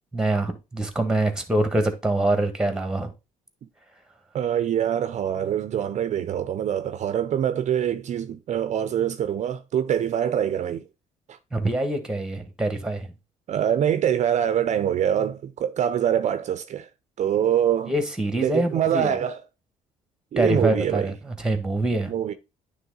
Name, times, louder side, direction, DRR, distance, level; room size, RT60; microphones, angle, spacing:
voice 1, 0.1-3.1 11.5-13.1 17.9-19.1 20.4-22.1, right 1 dB, 5° right, 1.4 m, -25 dB
voice 2, 4.3-10.9 11.3-11.4 13.5-16.9 17.2-17.9 18.4-19.4 20.3-21.1 22.1-22.3, right 9 dB, 50° right, 0.5 m, -24 dB
9.3 x 3.3 x 3.8 m
cardioid pair, 95°, 15 cm